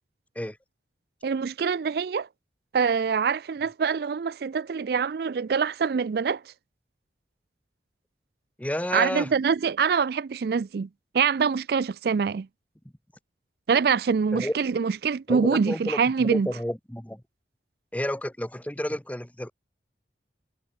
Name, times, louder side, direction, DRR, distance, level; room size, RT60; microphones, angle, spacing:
voice 1, 1.2-2.3 2.7-6.4 8.9-10.9 11.1-12.5 13.7-16.5, right 6 dB, 60° right, 0.4 m, -25 dB
voice 2, 8.6-9.3 14.3-14.6 15.3-17.2 17.9-19.5, left 1 dB, 10° left, 1.0 m, -30 dB
head